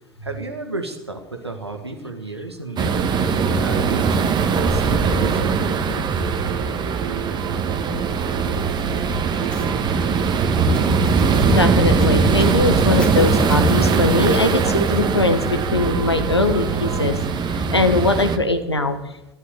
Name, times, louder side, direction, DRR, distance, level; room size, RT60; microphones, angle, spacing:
voice 1, 0.2-3.2 3.6-6.1, right 3 dB, 85° right, 5 dB, 2.0 m, -32 dB
sound 1, 2.8-18.4, right 5 dB, 35° right, 1.7 m, -21 dB
sound 2, 2.8-17.1, right 6 dB, 65° right, 1.3 m, -31 dB
sound 3, 9.3-14.5, left 1 dB, 5° left, 2.4 m, -43 dB
voice 2, 11.5-19.0, left 2 dB, 85° left, 8 dB, 1.5 m, -21 dB
14.0 x 11.0 x 8.4 m, 0.91 s
figure-of-eight pair, 70°, 13 cm